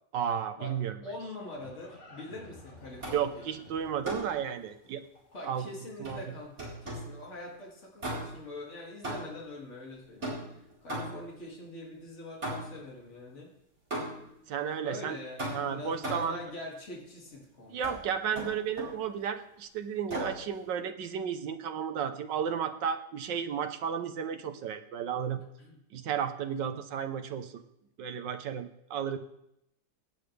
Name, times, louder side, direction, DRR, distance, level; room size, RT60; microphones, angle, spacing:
voice 1, 0.1-1.0 3.1-5.0 5.5-5.7 6.0-6.2 14.5-15.2 15.5-16.4 17.7-25.4 25.9-27.6 28.0-29.2, right 8 dB, 85° right, 10 dB, 1.5 m, -33 dB
Livestock farm animals working animals, 0.9-6.0, left 1 dB, 70° left, 4.2 m, -53 dB
voice 2, 1.0-3.4 5.3-13.5 14.8-18.0 25.6-25.8, left 2 dB, 40° left, -3 dB, 2.7 m, -44 dB
sound 1, 3.0-3.4 4.0-4.4 6.0-7.2 8.0-8.5 9.0-9.5 10.2-11.4 12.4-12.9 13.9-14.4 15.4-16.4 17.8-18.0 18.3-19.0 20.1-20.4, right 1 dB, 40° right, 4.5 m, -37 dB
17.5 x 9.7 x 3.3 m, 0.78 s
omnidirectional pair, 1.9 m